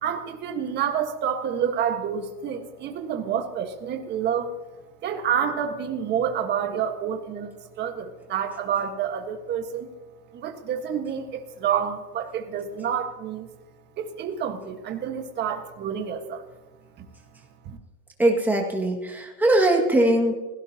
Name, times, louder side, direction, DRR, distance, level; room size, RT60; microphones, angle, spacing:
voice 1, 0.0-4.5 5.0-7.5 7.8-9.9 10.3-13.5 14.0-16.4 17.6-17.8, right 8 dB, 20° right, 5 dB, 1.5 m, -28 dB
voice 2, 18.2-20.3, right 1 dB, 5° right, 1 dB, 1.9 m, -21 dB
29.5 x 17.0 x 2.9 m, 1.1 s
supercardioid pair, 150°, 48 cm